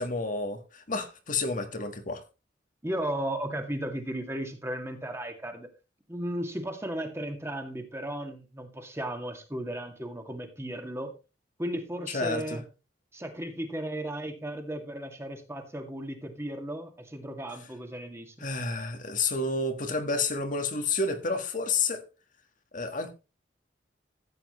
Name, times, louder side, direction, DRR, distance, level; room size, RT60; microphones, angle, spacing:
voice 1, 0.0-2.2 12.1-12.6 18.4-22.0 22.7-23.1, left 3 dB, 50° left, 1.6 m, -30 dB
voice 2, 2.8-5.7 6.1-11.1 11.6-12.6 13.1-18.5, right 1 dB, 15° right, 2.1 m, -35 dB
14.0 x 8.9 x 3.1 m
head